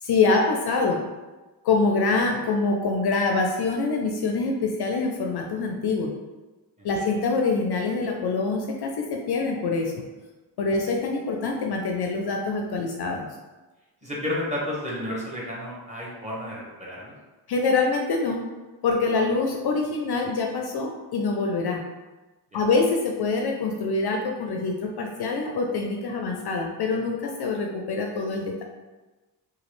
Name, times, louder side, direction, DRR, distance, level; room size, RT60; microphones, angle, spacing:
voice 1, 0.0-1.0 1.6-6.1 6.8-9.9 10.6-13.3 17.5-18.4 18.8-21.8 22.5-28.6, left 3 dB, 55° left, 1 dB, 0.5 m, -25 dB
voice 2, 6.8-7.1 14.0-17.1 22.5-22.7, left 1 dB, 15° right, -6 dB, 1.1 m, -32 dB
2.9 x 2.4 x 3.1 m, 1.2 s
cardioid pair, 75°, 47 cm